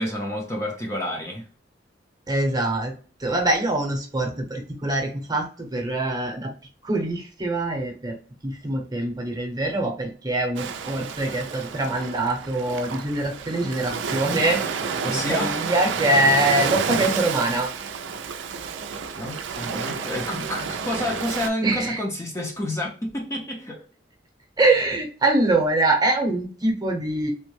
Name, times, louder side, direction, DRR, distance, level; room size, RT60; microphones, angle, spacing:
voice 1, 0.0-1.4 15.0-15.6 19.1-23.9, left 1 dB, 15° left, 0.5 m, -29 dB
voice 2, 2.3-2.9 3.2-6.5 6.8-8.2 8.4-14.6 15.0-17.7 21.6-22.0 24.6-27.3, right 2 dB, 20° right, 0.8 m, -24 dB
Ocean, 10.6-21.5, right 6 dB, 75° right, 0.4 m, -30 dB
3.5 x 2.1 x 3.0 m
head